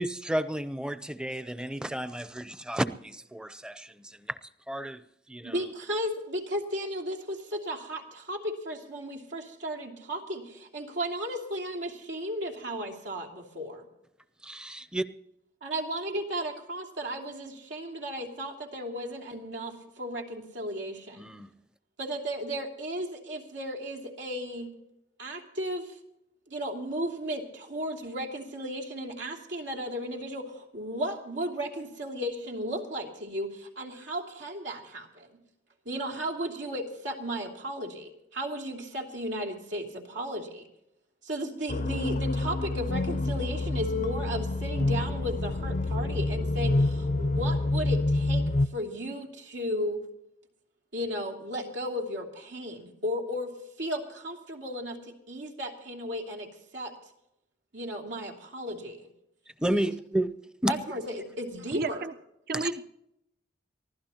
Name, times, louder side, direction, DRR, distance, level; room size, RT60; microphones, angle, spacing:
voice 1, 0.0-4.4 4.7-5.7 14.4-15.0 21.2-21.5 59.6-60.3 60.6-60.7 62.5-62.7, right 1 dB, 5° right, 12 dB, 0.6 m, -32 dB
voice 2, 5.4-13.8 15.6-21.3 22.0-24.7 25.2-26.0 26.5-35.4 35.8-40.6 41.2-48.4 48.7-50.0 50.9-56.9 57.7-59.0 60.7-62.1, equal, 90° right, 2 dB, 2.9 m, -35 dB
sound 1, 41.7-48.7, left 2 dB, 40° left, 0.5 m, -27 dB
voice 3, 61.7-62.1 62.5-62.8, right 3 dB, 55° right, 11 dB, 0.7 m, -31 dB
23.5 x 16.0 x 2.9 m, 0.81 s
head